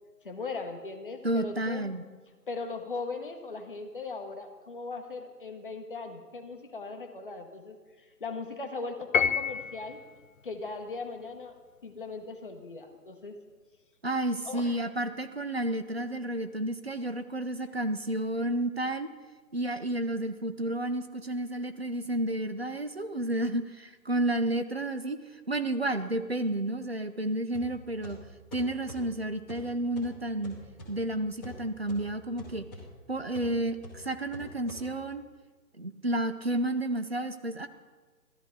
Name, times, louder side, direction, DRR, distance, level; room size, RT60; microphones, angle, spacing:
voice 1, 0.2-1.9 2.5-10.0 10.4-11.6 11.8-13.4 14.5-14.8, left 3 dB, 35° left, 4 dB, 0.9 m, -39 dB
voice 2, 1.2-2.0 14.0-19.1 19.5-28.2 28.5-30.6 30.9-32.7 33.1-35.2 35.8-37.7, right 1 dB, 40° right, 10 dB, 0.5 m, -31 dB
Piano, 9.1-10.0, left 6 dB, 55° left, 0.5 m, -27 dB
sound 1, 27.5-35.3, equal, ahead, 1.0 m, -47 dB
13.5 x 12.0 x 3.8 m, 1.4 s
figure-of-eight pair, 160°, 49 cm